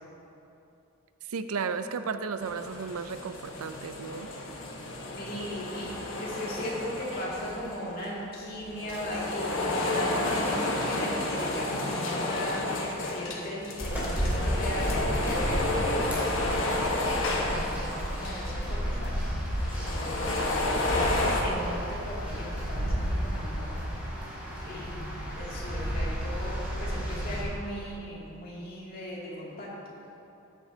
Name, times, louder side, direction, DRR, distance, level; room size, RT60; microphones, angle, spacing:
voice 1, 1.3-4.3, right 5 dB, 85° right, 10 dB, 0.5 m, -34 dB
sound 1, 2.4-8.0 8.6-18.8 19.0-19.1 19.5-21.4, left 2 dB, 65° left, 1.3 m, -31 dB
voice 2, 5.2-19.2 19.8-20.3 20.7-23.9 24.6-24.9 25.3-29.9, left 1 dB, 45° left, -6 dB, 2.4 m, -37 dB
sound 2, 13.8-27.4, equal, 10° right, 2.6 m, -32 dB
14.0 x 10.0 x 2.8 m, 2.8 s
head